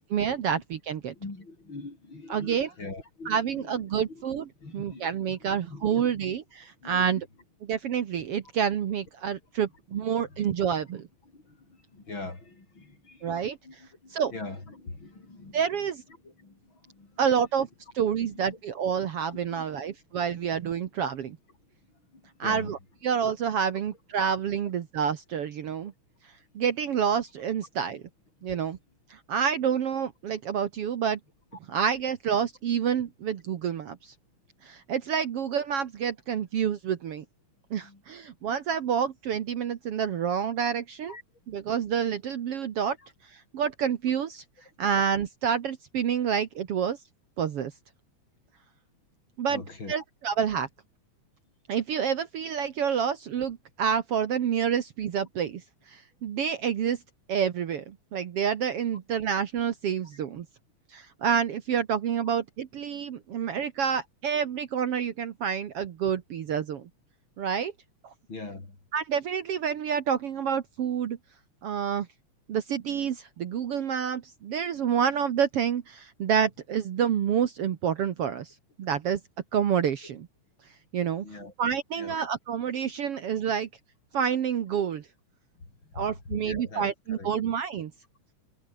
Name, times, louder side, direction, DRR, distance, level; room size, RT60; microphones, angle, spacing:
voice 1, 0.0-1.1 2.3-2.7 3.3-4.5 4.7-7.2 7.6-11.1 13.2-13.6 14.1-14.3 15.5-16.0 17.2-17.7 18.0-21.4 22.4-22.8 23.0-25.9 26.6-28.0 28.4-28.8 29.1-31.2 31.7-34.1 34.6-37.2 37.7-41.1 41.5-43.0 43.3-44.4 44.8-47.0 47.4-47.7 49.4-49.6 49.9-50.7 51.7-55.6 55.9-57.0 57.3-60.5 60.9-66.8 67.4-67.7 68.0-68.1 68.9-71.2 71.6-72.1 72.5-78.5 78.8-79.2 79.5-80.3 80.9-81.3 81.6-83.7 84.1-85.1 85.9-87.9, right 8 dB, 60° right, 2.1 m, -28 dB
voice 2, 1.1-4.2 4.6-6.3 6.8-7.1 9.9-10.4 11.2-15.6 16.2-17.2 18.2-18.6 19.0-20.0 21.9-22.8 27.9-28.0 37.8-38.0 41.1-41.2 43.0-43.1 44.6-44.7 49.5-49.9 63.3-63.4 68.3-68.8 81.2-81.5 82.0-82.2 85.6-87.3, left 3 dB, 40° left, 6.4 m, -43 dB
omnidirectional pair, 3.3 m